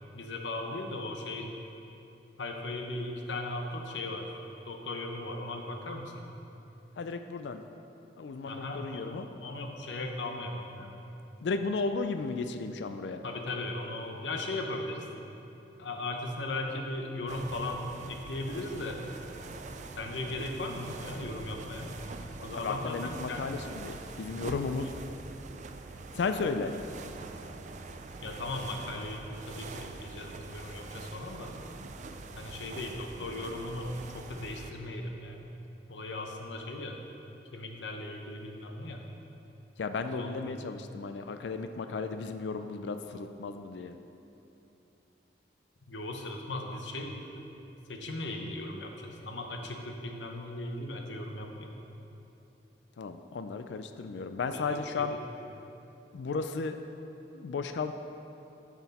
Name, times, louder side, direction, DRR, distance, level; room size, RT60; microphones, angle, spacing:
voice 1, 0.1-1.5 2.4-4.4 4.7-6.2 8.5-9.1 9.4-11.0 13.2-15.1 15.8-19.0 20.0-21.9 22.4-23.5 28.2-31.5 32.3-35.4 35.9-37.0 37.5-39.0 40.1-40.3 45.9-47.5 47.9-51.8 54.5-55.2, left 2 dB, 90° left, 3 dB, 0.9 m, -37 dB
voice 2, 7.0-7.6 8.2-9.3 11.4-13.2 22.5-24.9 26.1-26.8 39.8-44.0 53.0-55.2 56.1-56.8 57.3-57.9, left 4 dB, 75° left, 8 dB, 0.4 m, -34 dB
sound 1, 17.3-34.7, right 3 dB, 40° right, 0.4 m, -44 dB
10.5 x 6.0 x 4.2 m, 2.9 s
head